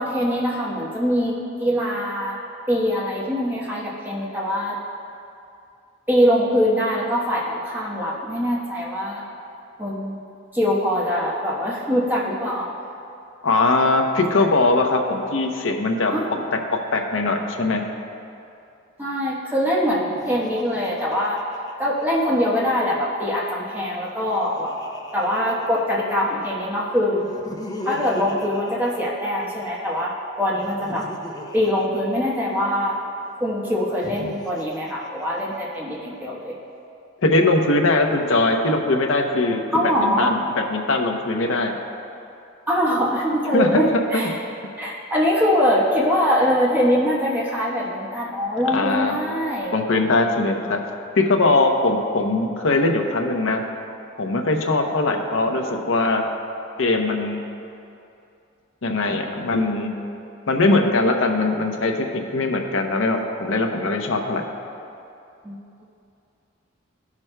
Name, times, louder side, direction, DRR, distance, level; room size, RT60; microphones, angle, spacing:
voice 1, 0.0-2.4 2.7-4.8 6.1-9.2 9.8-10.2 10.5-12.7 14.4-14.5 16.1-16.3 19.0-21.4 21.8-24.7 25.1-27.3 27.8-30.1 30.4-31.0 31.5-33.0 33.4-36.6 39.7-40.3 42.7-44.4 44.8-49.8 65.4-65.6, equal, 10° right, -5 dB, 1.0 m, -23 dB
voice 2, 13.4-16.1 16.9-17.8 37.2-40.4 40.7-41.7 43.5-44.0 48.7-49.2 49.7-50.8 51.2-53.6 54.2-56.2 56.8-57.4 58.8-59.9 60.5-64.5, left 2 dB, 65° left, 3 dB, 0.7 m, -21 dB
Laughter, 20.1-22.6 23.9-26.3 27.2-29.7 30.5-33.0 33.8-35.8, left 1 dB, 20° left, 0.5 m, -38 dB
15.0 x 6.0 x 2.2 m, 2.6 s
head